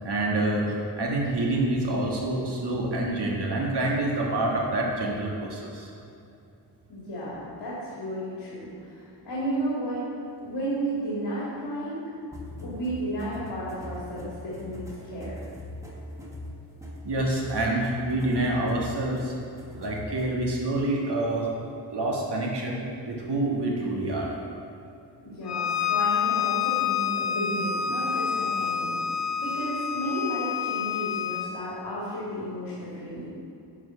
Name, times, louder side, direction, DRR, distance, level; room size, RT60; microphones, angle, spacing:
voice 1, 0.0-5.9 12.5-12.7 17.0-19.3 19.8-21.5 21.9-24.3, right 2 dB, 70° right, -2 dB, 1.6 m, -27 dB
voice 2, 6.9-10.0 10.4-12.1 12.6-15.4 25.2-29.0 29.4-33.3, right 1 dB, 85° left, -8 dB, 2.4 m, -33 dB
sound 1, 12.3-20.4, left 1 dB, 5° right, 1.2 m, -41 dB
Bowed string instrument, 25.5-31.5, left 8 dB, 40° left, 0.6 m, -28 dB
11.0 x 5.1 x 5.7 m, 2.7 s
wide cardioid pair, 155°, 42 cm